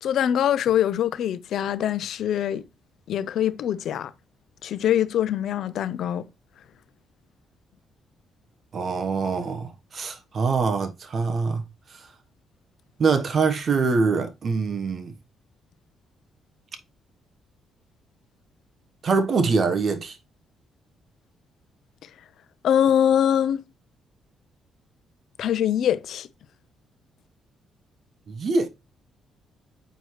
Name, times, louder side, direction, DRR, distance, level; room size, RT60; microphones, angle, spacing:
voice 1, 0.0-2.6 3.1-4.1 4.6-6.3 22.6-23.6 25.4-26.3, left 10 dB, 70° left, 0.6 m, -23 dB
voice 2, 8.7-11.6 13.0-15.1 19.0-20.2 28.3-28.7, right 4 dB, 50° right, 1.1 m, -24 dB
7.9 x 4.6 x 3.1 m
cardioid pair, 90°, 0 cm